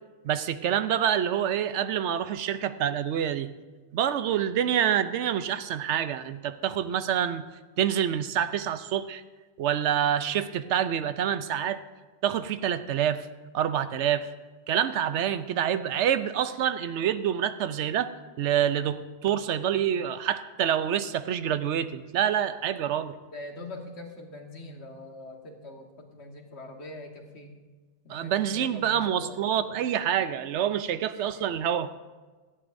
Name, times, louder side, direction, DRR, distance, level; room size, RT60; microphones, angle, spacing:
voice 1, 0.2-3.5 3.9-7.4 7.8-9.2 9.6-11.8 12.2-13.3 13.5-14.3 14.7-18.1 18.4-23.2 28.1-31.9, right 9 dB, 85° right, 12 dB, 0.9 m, -27 dB
voice 2, 23.2-27.6 28.0-29.4, left 2 dB, 70° left, 2 dB, 1.8 m, -43 dB
17.5 x 13.5 x 2.6 m, 1.3 s
omnidirectional pair, 1.2 m